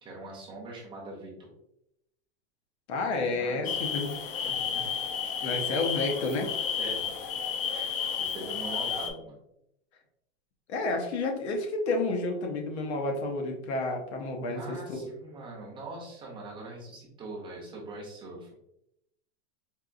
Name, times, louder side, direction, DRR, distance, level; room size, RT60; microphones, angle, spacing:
voice 1, 0.0-1.5 3.1-4.0 4.4-4.7 6.8-7.1 7.7-9.4 14.5-18.5, right 2 dB, 15° right, -2 dB, 0.6 m, -42 dB
voice 2, 2.9-4.2 5.4-6.5 10.7-15.1, left 2 dB, 80° left, 3 dB, 0.9 m, -30 dB
sound 1, 3.7-9.1, left 7 dB, 55° left, 0.6 m, -32 dB
4.6 x 2.4 x 2.5 m, 0.80 s
supercardioid pair, 160°, 33 cm